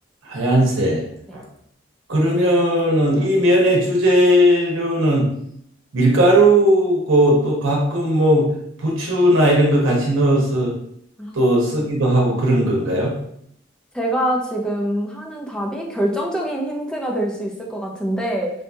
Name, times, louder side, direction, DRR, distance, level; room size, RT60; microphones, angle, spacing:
voice 1, 0.2-1.0 1.3-1.4 2.1-5.3 5.9-8.5 8.8-10.7 11.3-13.1, right 1 dB, 85° right, -2 dB, 0.8 m, -17 dB
voice 2, 13.9-18.5, right 1 dB, 5° left, -1 dB, 0.4 m, -24 dB
3.8 x 2.3 x 2.7 m, 0.71 s
head